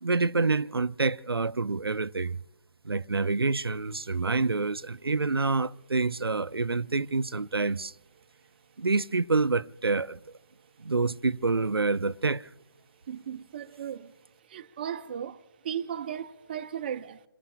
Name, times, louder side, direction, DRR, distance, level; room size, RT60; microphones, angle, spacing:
voice 1, 0.0-2.4 2.8-7.9 8.8-10.2 10.8-12.5, right 3 dB, 90° right, 0.5 m, -27 dB
voice 2, 13.1-14.1 14.5-17.2, right 9 dB, 25° right, 0.6 m, -36 dB
28.0 x 22.0 x 2.3 m
figure-of-eight pair, 155°, 12 cm